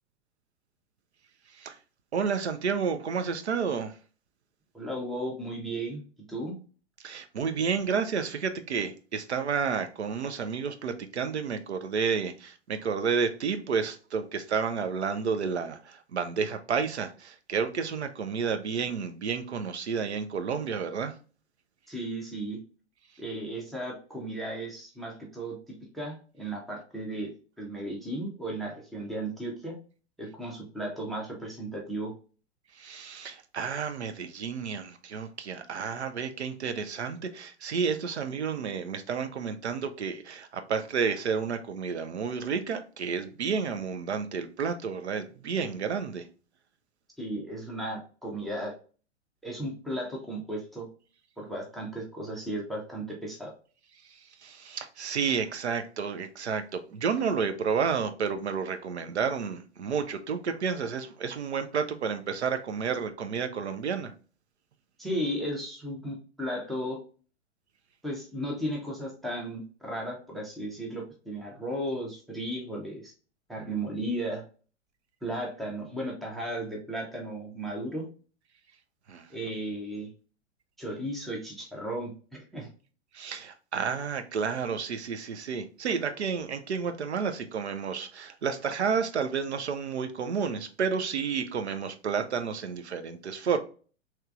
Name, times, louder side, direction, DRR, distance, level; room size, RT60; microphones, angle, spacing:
voice 1, 2.1-4.0 7.0-21.2 32.7-46.3 54.1-64.1 79.1-79.3 83.1-93.6, right 6 dB, 70° right, 0.6 m, -31 dB
voice 2, 4.7-6.0 6.3-6.6 21.9-22.6 23.2-27.3 27.6-29.8 30.2-32.1 47.2-48.7 49.4-50.9 51.4-53.5 65.0-67.0 68.0-73.1 73.5-74.4 75.2-78.0 79.3-80.1 80.8-82.7, right 1 dB, ahead, 0.4 m, -35 dB
3.2 x 3.0 x 2.4 m
figure-of-eight pair, 100°, 35 cm